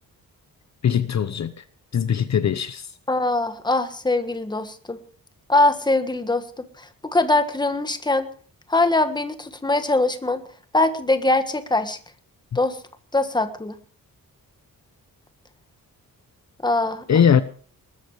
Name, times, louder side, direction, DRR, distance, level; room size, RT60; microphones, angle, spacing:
voice 1, 0.8-1.6 1.9-2.9 17.1-17.4, left 8 dB, 50° left, 0.9 m, -20 dB
voice 2, 3.1-5.0 5.5-8.3 8.7-10.4 10.7-12.0 12.5-12.8 13.1-13.7 16.6-17.2, left 2 dB, 10° left, 1.6 m, -22 dB
20.5 x 14.0 x 4.9 m
wide cardioid pair, 170°, 35 cm